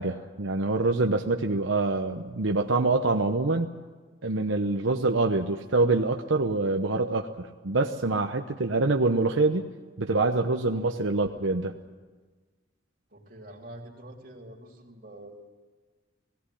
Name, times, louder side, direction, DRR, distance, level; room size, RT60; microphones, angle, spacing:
voice 1, 0.0-3.7 4.2-9.7 10.0-11.7, right 3 dB, 85° right, 4 dB, 0.9 m, -25 dB
voice 2, 13.1-15.5, right 1 dB, 45° right, -1 dB, 3.2 m, -46 dB
18.5 x 17.0 x 10.0 m, 1.4 s
head